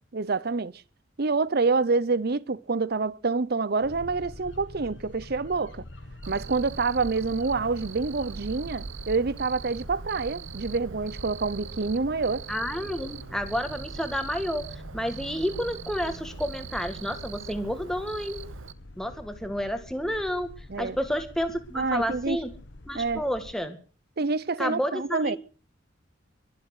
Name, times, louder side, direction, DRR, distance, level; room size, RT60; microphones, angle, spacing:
voice 1, 0.1-0.7 1.2-5.8 6.3-12.5 20.7-21.0 21.7-22.4 22.9-23.2 24.2-25.4, right 4 dB, 55° right, 0.7 m, -27 dB
sound 1, 3.8-23.5, left 1 dB, 65° left, 1.2 m, -46 dB
Cricket, 6.2-18.7, right 5 dB, 90° right, 0.8 m, -41 dB
voice 2, 12.5-14.6 14.9-18.4 19.0-20.5 20.8-22.5 22.9-23.8 24.6-25.4, equal, 5° left, 2.1 m, -30 dB
22.5 x 7.5 x 8.0 m
head